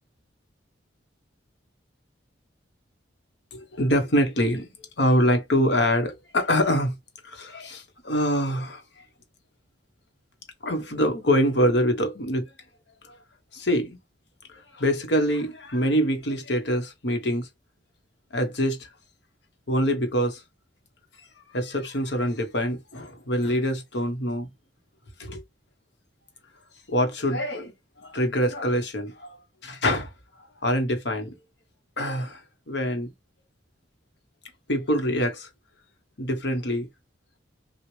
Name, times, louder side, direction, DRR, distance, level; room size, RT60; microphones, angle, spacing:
voice 1, 3.5-6.9 7.2-9.0 10.6-12.5 13.0-13.1 13.5-14.0 14.5-17.5 18.3-18.9 19.7-20.4 21.2-24.5 25.2-25.4 26.9-30.1 30.4-31.4 32.0-32.4 32.7-33.1 34.7-35.5 36.2-36.9, equal, 65° left, 1.1 m, -25 dB
6.0 x 2.4 x 3.2 m
head